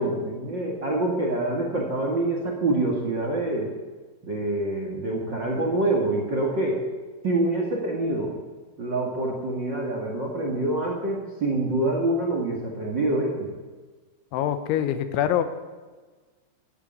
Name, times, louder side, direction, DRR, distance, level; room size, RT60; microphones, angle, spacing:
voice 1, 0.0-3.7 4.2-6.8 7.2-8.3 8.8-13.5, right 2 dB, 50° right, 0 dB, 1.4 m, -26 dB
voice 2, 14.3-15.4, left 10 dB, 85° left, 10 dB, 3.4 m, -24 dB
15.0 x 9.9 x 8.9 m, 1.3 s
omnidirectional pair, 5.3 m